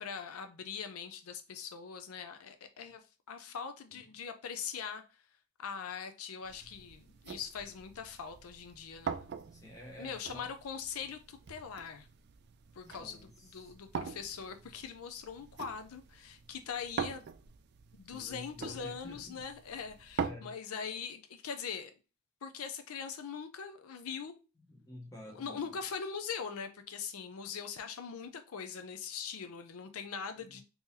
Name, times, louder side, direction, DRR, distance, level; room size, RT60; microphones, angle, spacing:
voice 1, 0.0-5.2 5.6-9.4 10.0-12.1 12.7-17.3 17.9-21.9 22.4-24.3 25.3-30.6, left 6 dB, 80° left, 0.5 m, -42 dB
sound 1, 6.4-20.3, right 6 dB, 50° right, 0.3 m, -44 dB
voice 2, 9.5-10.5 12.8-13.3 13.6-13.7 18.1-19.4 20.2-20.6 24.7-25.6, left 1 dB, 15° left, 0.9 m, -49 dB
3.7 x 2.9 x 2.7 m
head